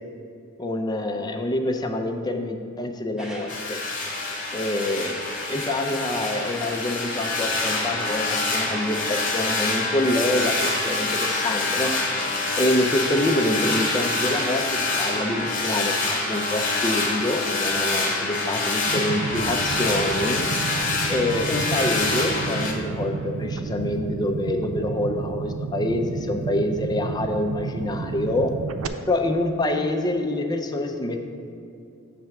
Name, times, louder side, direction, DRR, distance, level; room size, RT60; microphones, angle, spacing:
voice 1, 0.6-3.8 4.5-5.1 5.5-12.2 12.6-16.0 16.3-20.4 21.1-28.5 29.1-31.2, left 1 dB, 20° left, 5 dB, 0.4 m, -26 dB
sound 1, 3.2-21.3, equal, 5° right, 0.9 m, -39 dB
sound 2, 3.5-22.7, left 3 dB, 40° left, 1.0 m, -26 dB
sound 3, 18.9-28.9, right 4 dB, 90° right, 0.4 m, -31 dB
7.5 x 3.3 x 5.8 m, 2.6 s
head